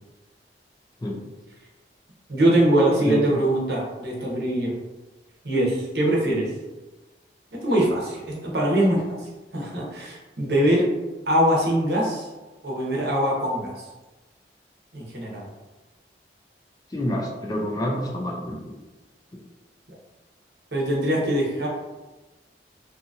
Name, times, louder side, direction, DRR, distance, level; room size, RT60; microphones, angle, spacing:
voice 1, 2.3-4.7 5.4-6.5 7.5-9.2 9.5-10.9 11.3-12.3 12.6-13.7 14.9-15.5 20.7-21.7, right 1 dB, 70° right, -3 dB, 0.8 m, -22 dB
voice 2, 16.9-18.7, equal, 20° left, 0 dB, 0.3 m, -28 dB
2.7 x 2.6 x 2.4 m, 1.1 s
head